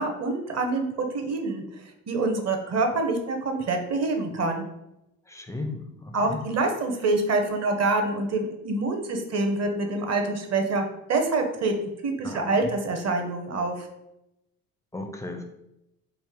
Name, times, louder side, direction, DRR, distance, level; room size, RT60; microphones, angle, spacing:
voice 1, 0.0-1.6 2.1-4.7 6.1-13.9, right 3 dB, 35° right, 4 dB, 0.8 m, -26 dB
voice 2, 5.3-5.9 6.2-6.4 12.2-12.7 14.9-15.4, left 2 dB, 5° left, 3 dB, 0.4 m, -35 dB
3.3 x 2.5 x 3.7 m, 0.88 s
figure-of-eight pair, 50°, 43 cm